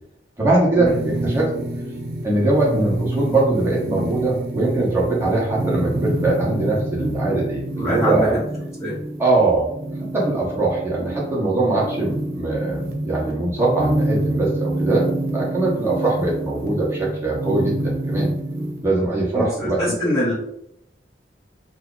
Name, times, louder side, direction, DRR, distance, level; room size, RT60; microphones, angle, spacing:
voice 1, 0.4-1.5 2.2-8.4 9.2-9.7 10.1-15.1 15.3-18.3 18.8-20.0, right 2 dB, 15° right, -5 dB, 1.0 m, -21 dB
sound 1, 0.9-18.9, right 1 dB, 60° right, 0.6 m, -27 dB
voice 2, 7.8-8.4 8.8-9.0 19.3-19.5 19.8-20.3, equal, 15° left, -11 dB, 1.0 m, -23 dB
2.9 x 2.3 x 3.7 m, 0.75 s
head